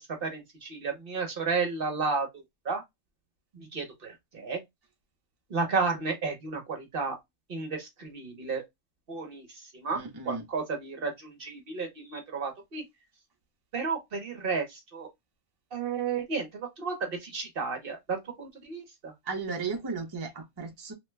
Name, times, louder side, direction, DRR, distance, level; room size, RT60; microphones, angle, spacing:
voice 1, 0.2-2.3 2.7-2.8 3.7-4.6 5.5-7.2 7.5-8.6 9.1-9.5 9.8-10.0 10.3-12.8 13.7-15.1 15.7-19.1, right 4 dB, 50° right, 0.9 m, -32 dB
voice 2, 9.9-10.4 19.3-20.9, right 4 dB, 25° right, 0.6 m, -35 dB
3.1 x 2.1 x 3.1 m
omnidirectional pair, 1.3 m